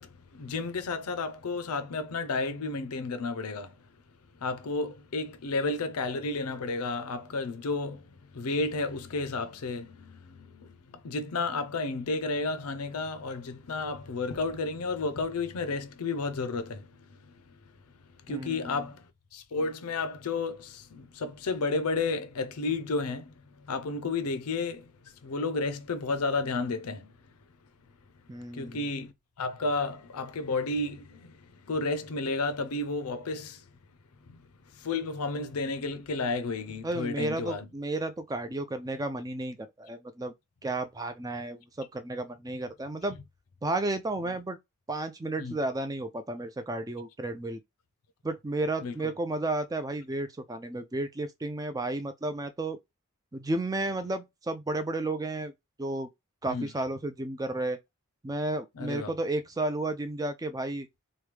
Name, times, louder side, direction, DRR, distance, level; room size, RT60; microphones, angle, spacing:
voice 1, 0.0-3.7 4.4-17.4 18.3-19.0 19.3-27.1 28.5-33.6 34.2-34.5 34.7-37.7 45.4-45.5 48.8-49.1 56.5-56.7 58.8-59.1, left 3 dB, 90° left, 0.6 m, -32 dB
voice 2, 18.3-18.9 28.3-28.9 36.8-40.3 40.6-43.2 43.6-44.6 44.9-47.6 48.2-52.8 53.3-55.5 55.8-56.1 56.4-57.8 58.2-60.9, right 2 dB, 15° right, 0.4 m, -32 dB
3.1 x 2.2 x 3.3 m
head